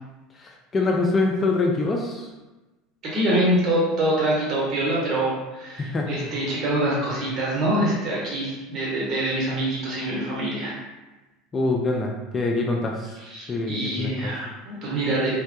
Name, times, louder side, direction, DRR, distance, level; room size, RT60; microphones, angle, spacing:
voice 1, 0.4-2.3 5.8-6.1 11.5-13.1 13.5-14.3, left 3 dB, 25° left, 1 dB, 0.3 m, -24 dB
voice 2, 3.0-10.7 13.2-15.3, right 1 dB, 40° right, -6 dB, 1.1 m, -25 dB
2.1 x 2.1 x 2.7 m, 1.1 s
hypercardioid pair, 75°, 0 cm